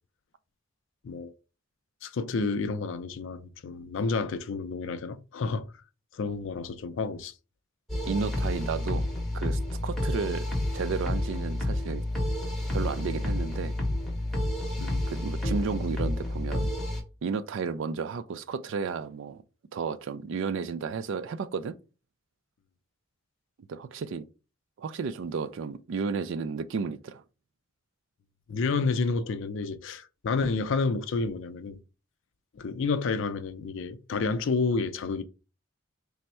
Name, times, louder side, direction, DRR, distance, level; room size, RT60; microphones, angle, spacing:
voice 1, 2.0-5.7 6.1-7.3 14.8-15.0 28.5-31.8 32.5-35.2, left 4 dB, 65° left, 0.4 m, -30 dB
sound 1, 7.9-17.0, left 1 dB, ahead, 0.8 m, -30 dB
voice 2, 8.1-9.1 9.3-10.5 10.7-12.0 12.7-13.7 15.1-16.7 17.2-19.4 19.7-21.7 23.7-24.3 24.8-27.2, right 5 dB, 65° right, 0.3 m, -32 dB
3.4 x 2.1 x 4.2 m
head